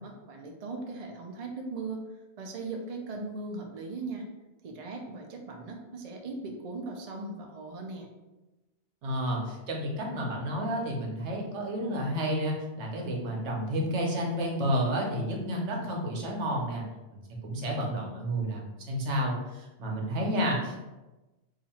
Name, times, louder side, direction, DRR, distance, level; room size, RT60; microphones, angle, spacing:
voice 1, 0.0-2.0 2.4-4.3 4.6-8.1, right 3 dB, 50° right, 2 dB, 0.5 m, -38 dB
voice 2, 9.0-16.8 17.1-20.9, equal, 80° right, 0 dB, 1.1 m, -31 dB
2.8 x 2.5 x 4.1 m, 1.1 s
omnidirectional pair, 1.2 m